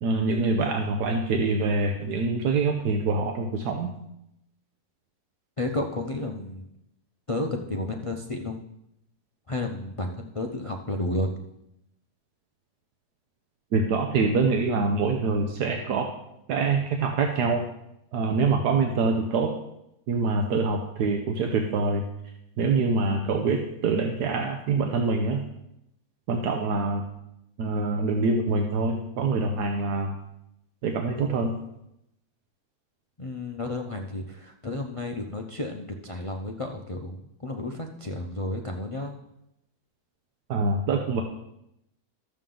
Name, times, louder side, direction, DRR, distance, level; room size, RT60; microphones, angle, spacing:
voice 1, 0.0-3.9 13.7-16.1 16.5-17.6 18.1-19.5 20.1-22.0 22.6-25.4 26.3-27.1 27.6-30.2 30.8-31.5 40.5-41.2, right 3 dB, 80° right, 3 dB, 1.4 m, -25 dB
voice 2, 5.6-6.7 7.3-8.6 9.5-11.3 33.2-39.2, left 2 dB, 50° left, 3 dB, 0.3 m, -32 dB
12.5 x 7.5 x 3.8 m, 0.83 s
omnidirectional pair, 1.7 m